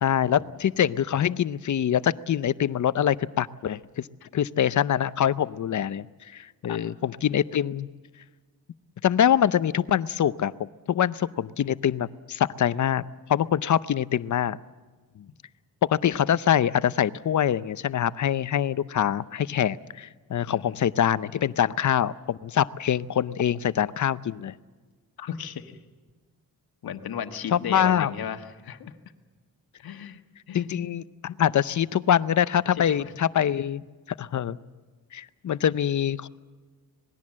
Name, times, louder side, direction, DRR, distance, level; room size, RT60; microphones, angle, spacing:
voice 1, 0.0-4.1 4.3-6.1 6.3-7.9 9.0-10.5 10.9-13.0 13.3-14.6 15.8-24.5 27.5-28.1 30.5-33.8 34.2-34.6 35.1-36.3, left 9 dB, 55° left, 16 dB, 0.7 m, -24 dB
voice 2, 20.5-20.8 25.2-25.8 26.8-28.9 29.8-30.2 30.5-30.7 32.7-33.1, left 8 dB, 80° left, 7 dB, 1.5 m, -36 dB
26.5 x 20.0 x 7.4 m, 1.4 s
wide cardioid pair, 165°, 36 cm